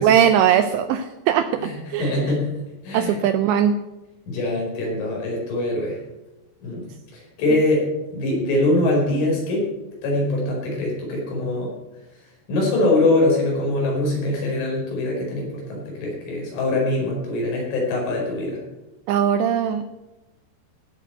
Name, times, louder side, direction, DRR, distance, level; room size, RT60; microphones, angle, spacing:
voice 1, 0.0-2.4 2.9-3.8 7.5-7.6 19.1-19.9, right 9 dB, 85° right, 9 dB, 2.6 m, -20 dB
voice 2, 1.6-3.2 4.3-6.0 6.6-6.8 7.1-9.7 10.0-11.7 12.5-18.6, left 2 dB, 70° left, -2 dB, 7.2 m, -23 dB
16.5 x 6.9 x 8.0 m, 1.0 s
omnidirectional pair, 5.7 m